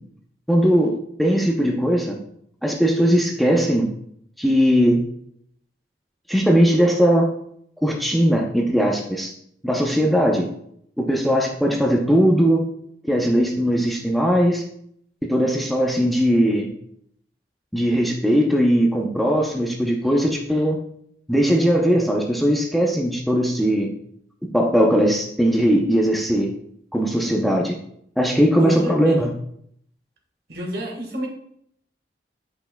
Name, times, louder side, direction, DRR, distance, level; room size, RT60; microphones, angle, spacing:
voice 1, 0.5-2.2 2.6-3.9 4.4-5.0 6.3-7.3 7.8-9.3 9.6-10.5 11.0-12.6 13.0-14.6 15.2-16.7 17.7-20.8 21.3-23.9 24.5-26.5 26.9-27.8 28.2-29.3, equal, ahead, 0 dB, 0.6 m, -19 dB
voice 2, 28.6-29.2 30.5-31.3, equal, 60° right, 2 dB, 1.4 m, -29 dB
8.3 x 5.6 x 2.2 m, 0.69 s
head